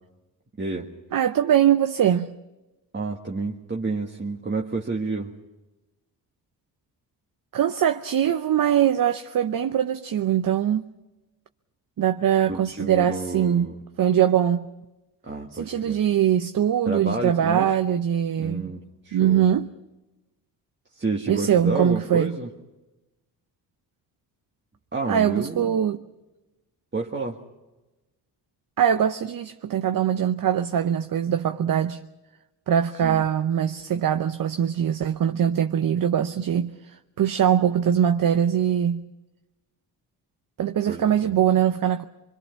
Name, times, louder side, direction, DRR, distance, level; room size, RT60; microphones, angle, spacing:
voice 1, 0.6-0.9 2.9-5.3 12.4-13.8 15.3-16.0 16.8-17.7 18.4-19.4 21.0-22.5 24.9-25.8 26.9-27.4 33.0-33.2 40.9-41.4, right 3 dB, 25° right, 1.7 m, -30 dB
voice 2, 1.1-2.4 7.5-10.8 12.0-13.7 14.0-14.7 15.5-18.8 19.1-19.7 21.3-22.4 25.1-26.0 28.8-32.0 32.7-39.0 40.6-42.0, right 9 dB, 50° right, 0.8 m, -22 dB
24.5 x 22.0 x 5.8 m
supercardioid pair, 65°, 43 cm